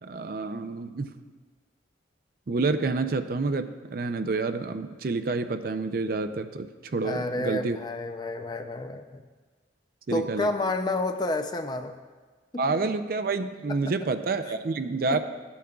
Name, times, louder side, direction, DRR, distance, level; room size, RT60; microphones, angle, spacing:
voice 1, 0.0-1.1 2.5-7.8 10.1-10.5 12.6-15.2, right 3 dB, 50° right, 9 dB, 0.4 m, -28 dB
voice 2, 7.0-9.2 10.1-12.0 12.5-12.8 14.5-14.6 15.1-15.2, left 2 dB, 20° left, 7 dB, 0.4 m, -30 dB
15.5 x 8.5 x 2.3 m, 1.4 s
head